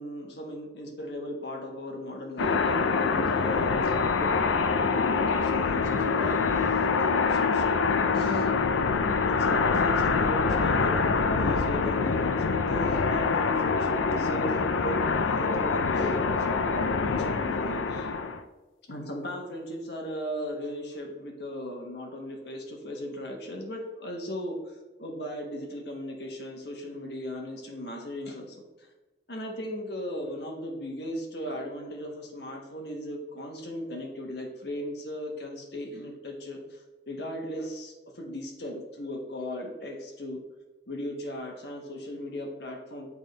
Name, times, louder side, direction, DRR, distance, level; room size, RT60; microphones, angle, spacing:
voice 1, 0.0-7.7 8.1-8.5 9.3-18.1 18.9-28.6 29.3-36.8 37.1-40.4 40.9-43.1, equal, 60° left, 2 dB, 1.1 m, -37 dB
sound 1, 2.4-18.4, left 4 dB, 85° left, 0.4 m, -25 dB
8.6 x 3.5 x 4.0 m, 1.2 s
head